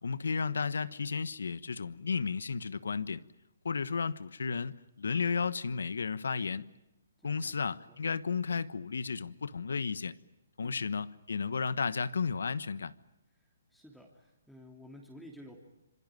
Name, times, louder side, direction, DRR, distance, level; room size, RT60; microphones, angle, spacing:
voice 1, 0.0-3.2 3.6-6.7 7.2-10.2 10.6-12.9, left 5 dB, 80° left, 1.2 m, -33 dB
voice 2, 7.2-7.7 10.6-10.9 13.7-15.6, left 1 dB, ahead, 3.0 m, -52 dB
26.5 x 24.5 x 9.2 m
hypercardioid pair, 150°, 0 cm